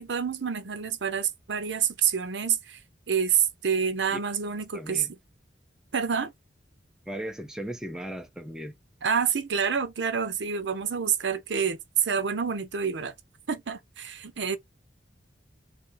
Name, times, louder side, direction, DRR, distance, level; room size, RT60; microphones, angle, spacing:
voice 1, 0.0-2.8 3.1-5.1 5.9-6.3 9.0-13.1 13.5-14.6, right 7 dB, 75° right, 0.6 m, -27 dB
voice 2, 4.7-5.1 7.1-8.8, equal, 5° right, 0.5 m, -37 dB
3.2 x 2.7 x 3.8 m
head